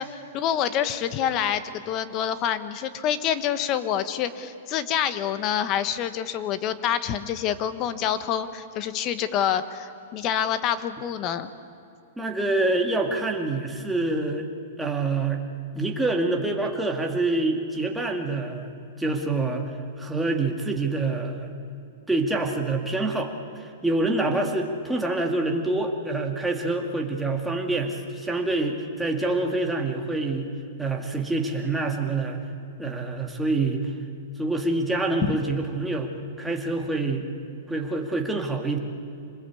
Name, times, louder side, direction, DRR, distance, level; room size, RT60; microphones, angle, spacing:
voice 1, 0.0-11.5 35.2-35.4, left 9 dB, 30° left, 12 dB, 1.2 m, -27 dB
voice 2, 12.2-14.5 14.8-15.4 15.7-18.7 19.0-21.5 22.1-30.5 30.8-32.4 32.8-33.9 34.4-36.1 36.4-37.3 37.7-38.8, right 2 dB, 5° right, 1 dB, 2.1 m, -26 dB
26.0 x 20.5 x 8.5 m, 2.6 s
hypercardioid pair, 150°, 0 cm